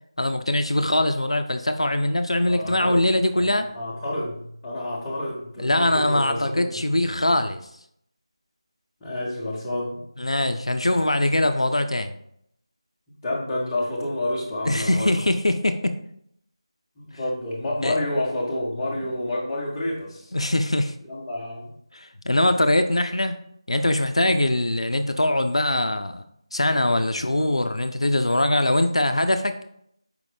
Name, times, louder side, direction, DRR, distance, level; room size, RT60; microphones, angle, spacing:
voice 1, 0.2-3.7 5.6-7.6 10.2-12.2 14.7-15.9 17.8-18.0 20.3-20.9 21.9-23.4 23.7-26.2 26.5-29.5, left 1 dB, 75° left, 8 dB, 0.4 m, -22 dB
voice 2, 2.4-3.0 3.4-6.7 9.0-10.0 13.2-15.1 17.0-20.3 21.0-21.7 24.2-24.4, left 1 dB, 10° left, -7 dB, 0.7 m, -29 dB
4.8 x 2.5 x 3.3 m, 0.70 s
figure-of-eight pair, 165°, 3 cm